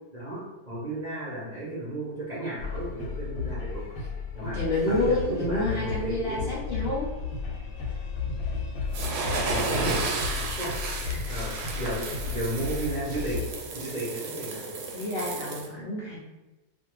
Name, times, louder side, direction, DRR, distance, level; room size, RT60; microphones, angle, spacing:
voice 1, 0.1-4.1 4.3-4.6 4.8-6.4 9.5-10.9 11.3-13.4 13.7-14.6, right 1 dB, 40° right, -9 dB, 0.6 m, -34 dB
sound 1, 2.6-13.5, left 5 dB, 85° left, 1.2 m, -34 dB
voice 2, 4.5-7.1 11.1-11.4 14.9-16.2, left 2 dB, 70° left, -6 dB, 0.6 m, -29 dB
sound 2, 8.9-15.7, right 3 dB, 80° right, 1.1 m, -33 dB
2.5 x 2.5 x 3.0 m, 1.1 s
omnidirectional pair, 1.7 m